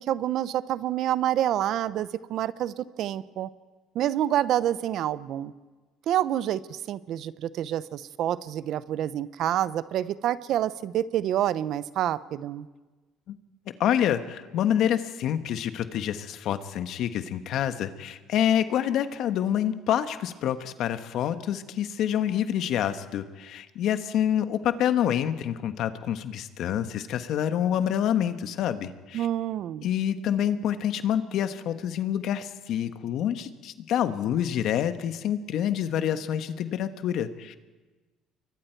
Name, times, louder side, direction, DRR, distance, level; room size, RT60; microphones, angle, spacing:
voice 1, 0.0-3.5 3.9-5.5 6.1-12.7 29.1-29.9, right 11 dB, 65° right, 16 dB, 0.8 m, -28 dB
voice 2, 13.8-29.3 29.8-37.6, left 10 dB, 65° left, 9 dB, 1.4 m, -27 dB
29.0 x 23.0 x 4.7 m, 1.3 s
supercardioid pair, 85°, 0 cm